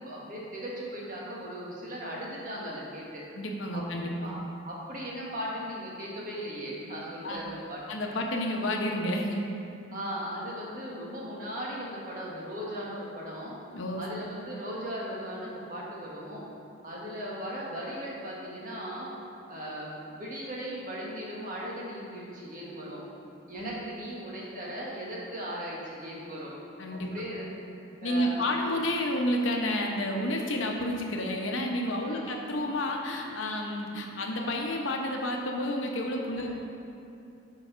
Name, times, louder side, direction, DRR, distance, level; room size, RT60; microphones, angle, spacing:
voice 1, 0.0-3.2 3.7-3.8 4.2-7.8 9.9-13.5 14.0-16.4 16.8-19.1 19.5-23.0 23.5-26.5 26.9-27.5 28.0-28.8 32.0-32.4 36.3-36.6, equal, 45° right, -5 dB, 1.5 m, -38 dB
voice 2, 3.3-4.3 7.2-7.4 7.9-9.5 13.7-14.0 23.5-23.7 26.8-27.1 28.0-36.6, left 1 dB, 75° left, 1 dB, 0.9 m, -30 dB
7.0 x 4.7 x 5.6 m, 2.6 s
head